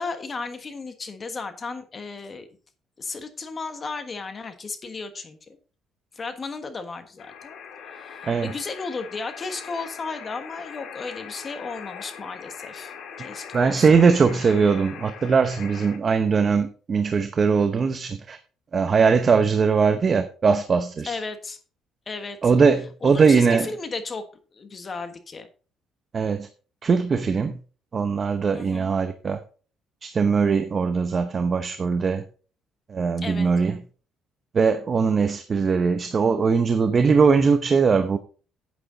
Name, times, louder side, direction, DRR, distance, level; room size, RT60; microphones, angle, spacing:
voice 1, 0.0-2.5 3.0-5.6 6.1-7.6 7.9-14.0 21.1-21.6 22.1-22.5 23.0-24.2 24.5-25.5 28.5-28.9 33.2-33.5, left 4 dB, 30° left, 1.3 m, -34 dB
sound 1, 7.2-16.0, left 7 dB, 75° left, 2.1 m, -41 dB
voice 2, 13.5-18.4 18.7-21.2 22.4-23.7 26.1-26.5 26.8-27.6 27.9-29.4 30.0-32.2 32.9-33.7 34.5-38.2, right 5 dB, 35° right, 0.8 m, -20 dB
9.3 x 9.3 x 4.0 m
cardioid pair, 125°, 0 cm